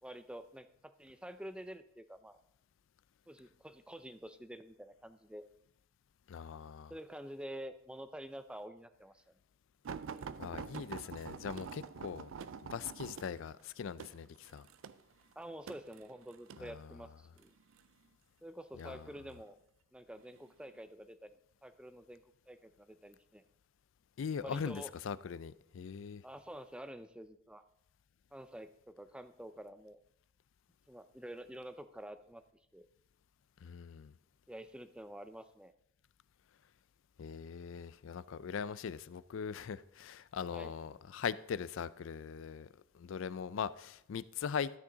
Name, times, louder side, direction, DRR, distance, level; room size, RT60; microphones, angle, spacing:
voice 1, 0.0-2.4 3.3-5.4 6.9-9.3 15.4-17.5 18.4-19.6 19.9-21.3 21.6-23.4 24.4-24.9 26.2-27.6 28.3-30.0 30.9-32.4 32.7-32.9 34.5-35.7 40.5-40.7, right 1 dB, 5° right, 0.4 m, -48 dB
voice 2, 6.3-6.9 10.4-12.3 12.6-14.6 16.6-16.8 18.8-19.0 24.2-26.2 33.6-34.1 37.2-42.7 42.9-44.7, left 7 dB, 70° left, 0.4 m, -41 dB
sound 1, 9.8-16.7 17.4-17.9 18.8-19.5 20.2-20.4 20.8-20.9, right 6 dB, 75° right, 0.4 m, -46 dB
13.0 x 6.1 x 3.9 m
head